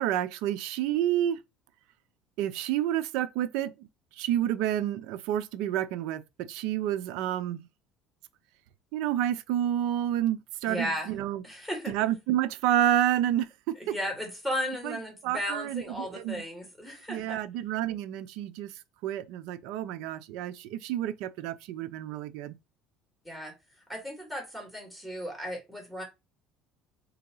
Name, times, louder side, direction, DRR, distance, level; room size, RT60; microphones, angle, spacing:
voice 1, 0.0-1.4 2.4-3.7 4.2-7.6 8.9-11.4 11.9-13.5 14.8-15.0 15.2-16.4 17.1-18.7 19.0-22.5, right 12 dB, 75° right, 0.4 m, -29 dB
voice 2, 10.7-11.1 11.4-11.9 13.8-17.4 23.2-23.5 23.9-26.0, equal, 5° right, 2.5 m, -35 dB
3.7 x 2.9 x 3.8 m
supercardioid pair, 90°, 0 cm